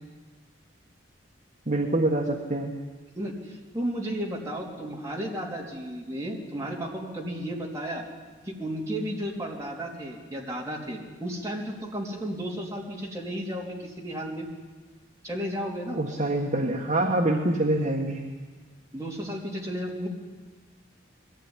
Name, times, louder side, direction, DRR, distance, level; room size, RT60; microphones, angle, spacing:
voice 1, 1.7-2.7 15.9-18.3, right 1 dB, 40° right, 1 dB, 1.5 m, -25 dB
voice 2, 3.2-8.0 8.5-14.5 15.2-16.0 18.9-20.1, equal, 15° right, -2 dB, 3.4 m, -33 dB
22.0 x 15.5 x 9.9 m, 1.4 s
head